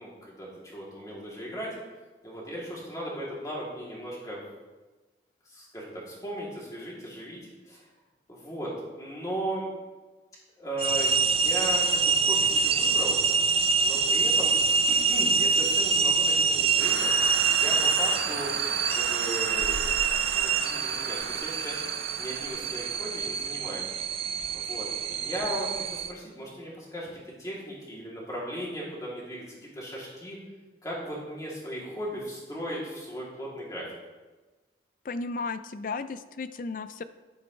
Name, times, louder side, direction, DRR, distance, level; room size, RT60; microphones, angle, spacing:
voice 1, 0.0-1.7 2.2-4.4 5.5-7.4 7.6-7.8 8.3-9.7 10.6-13.2 13.8-17.1 17.5-18.5 18.9-19.8 20.3-21.8 22.2-23.9 24.5-30.4 30.8-33.8, right 1 dB, 20° left, -5 dB, 2.9 m, -37 dB
sound 1, 10.8-26.1, right 5 dB, 35° right, 0.4 m, -25 dB
sound 2, 16.8-23.5, right 4 dB, 90° right, 0.9 m, -37 dB
voice 2, 35.0-37.0, left 4 dB, 50° left, 12 dB, 0.4 m, -34 dB
11.0 x 9.6 x 3.3 m, 1.2 s
head